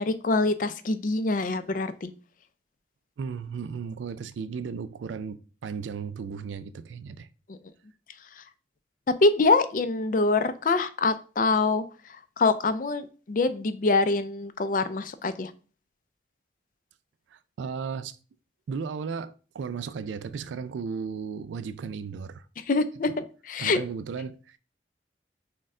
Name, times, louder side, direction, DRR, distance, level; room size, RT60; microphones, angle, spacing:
voice 1, 0.0-2.1 7.5-7.6 9.2-11.8 12.4-15.5 22.7-23.8, left 3 dB, 45° left, 0.4 m, -25 dB
voice 2, 3.2-7.3 17.3-18.2 18.7-22.5 23.6-24.6, right 5 dB, 90° right, 0.3 m, -35 dB
6.3 x 2.2 x 3.6 m
head